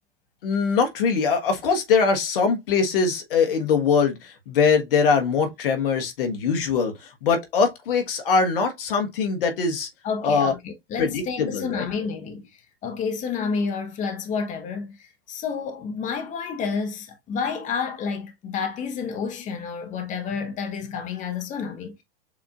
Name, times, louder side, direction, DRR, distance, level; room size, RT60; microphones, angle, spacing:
voice 1, 0.4-6.9 7.2-9.9 10.2-10.5 11.0-11.9, left 5 dB, 65° left, 1.3 m, -22 dB
voice 2, 10.0-12.5 12.8-22.0, left 5 dB, 25° left, 0.8 m, -30 dB
7.1 x 2.5 x 2.4 m
hypercardioid pair, 95°, 30 cm